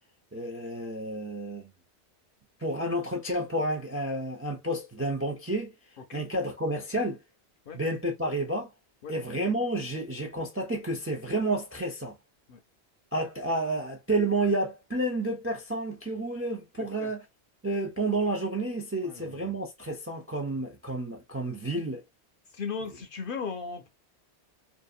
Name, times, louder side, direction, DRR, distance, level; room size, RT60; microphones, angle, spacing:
voice 1, 0.3-1.7 2.6-5.7 6.1-7.2 7.7-8.7 9.1-12.2 13.1-17.2 17.6-22.0, right 1 dB, 20° right, 0.4 m, -30 dB
voice 2, 16.8-17.1 19.0-19.6 22.5-23.9, left 5 dB, 60° left, 0.7 m, -37 dB
2.7 x 2.5 x 2.3 m
omnidirectional pair, 1.1 m